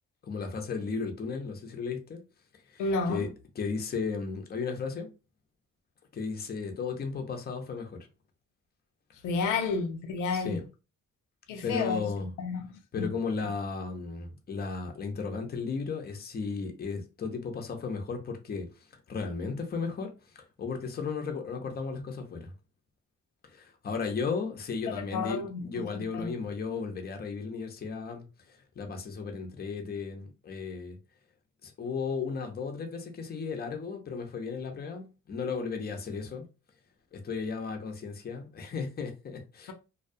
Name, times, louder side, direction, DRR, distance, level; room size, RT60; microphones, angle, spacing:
voice 1, 0.2-2.2 2.7-3.3 3.6-5.1 6.1-7.9 10.3-10.6 11.6-12.3 12.9-18.7 19.1-20.1 20.6-22.5 23.5-31.0 31.6-36.4 37.1-39.7, left 5 dB, 30° left, 0.6 m, -35 dB
voice 2, 2.8-3.3 9.2-10.6 11.5-12.1 12.4-13.1 24.9-26.4, left 4 dB, 90° left, 0.5 m, -31 dB
2.3 x 2.2 x 2.5 m
cardioid pair, 90°, 30 cm